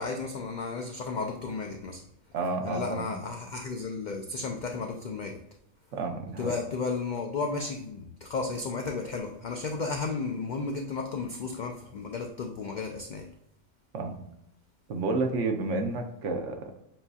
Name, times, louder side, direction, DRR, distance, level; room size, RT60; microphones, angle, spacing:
voice 1, 0.0-2.1 2.6-5.4 6.4-13.3, left 4 dB, 75° left, 3 dB, 0.4 m, -33 dB
voice 2, 2.3-3.1 5.9-6.5 13.9-14.2 14.9-16.8, right 3 dB, 70° right, 4 dB, 1.0 m, -30 dB
7.4 x 2.7 x 2.3 m, 0.79 s
omnidirectional pair, 1.3 m